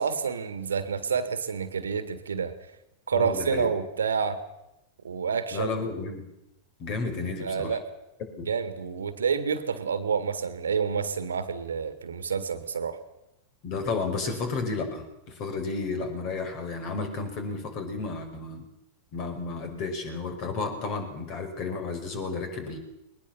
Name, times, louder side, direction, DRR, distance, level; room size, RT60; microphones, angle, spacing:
voice 1, 0.0-2.5 3.1-4.4 5.0-5.9 7.4-7.8 8.4-13.0, right 6 dB, 70° right, 12 dB, 1.8 m, -28 dB
voice 2, 3.1-3.7 5.5-6.2 6.8-7.8 8.4-8.5 13.6-18.7 19.1-22.8, left 4 dB, 40° left, 6 dB, 5.4 m, -32 dB
21.0 x 19.5 x 7.1 m, 0.90 s
figure-of-eight pair, 90°, 0 cm